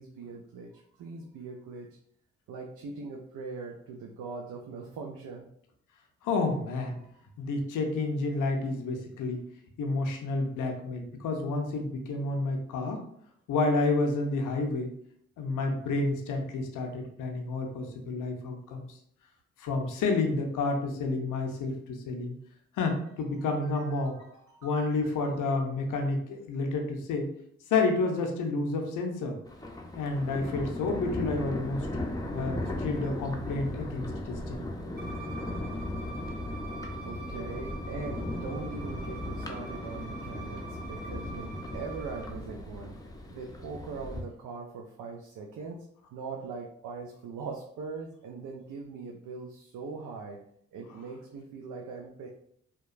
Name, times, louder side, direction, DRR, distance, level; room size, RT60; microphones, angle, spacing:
voice 1, 0.0-1.9 2.5-5.5 23.5-25.3 36.2-36.3 37.0-43.0 43.3-50.4 50.7-52.3, right 4 dB, 70° right, 0 dB, 0.5 m, -41 dB
voice 2, 6.2-7.0 7.4-9.5 9.8-13.0 13.5-14.9 15.4-19.0 19.6-22.3 22.7-24.2 24.6-27.3 27.7-29.4 30.0-31.9 32.3-34.7, left 3 dB, 75° left, 3 dB, 0.5 m, -30 dB
Thunder, 29.5-44.2, left 1 dB, 10° left, 0.5 m, -37 dB
Bowed string instrument, 35.0-42.3, right 3 dB, 30° right, 0.7 m, -46 dB
2.8 x 2.2 x 2.4 m, 0.68 s
supercardioid pair, 45°, 32 cm